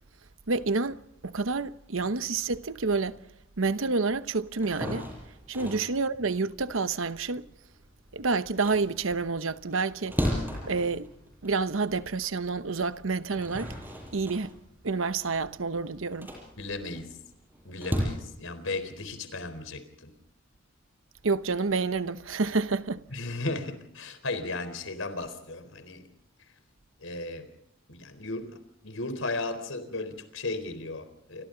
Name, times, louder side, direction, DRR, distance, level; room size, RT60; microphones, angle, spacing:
voice 1, 0.5-3.2 3.6-5.1 5.5-7.5 8.1-10.2 10.6-11.1 11.4-13.7 14.1-14.5 14.8-16.3 21.2-23.0, right 4 dB, 80° right, 1.0 m, -28 dB
sound 1, 4.5-8.0 8.4-11.9 12.4-12.5 13.1-18.1, equal, 10° right, 7.8 m, -35 dB
voice 2, 16.6-17.2 17.6-20.1 23.1-26.0 27.0-27.5 27.9-28.6 28.8-31.4, left 2 dB, 80° left, 4.1 m, -35 dB
29.5 x 25.5 x 3.9 m
head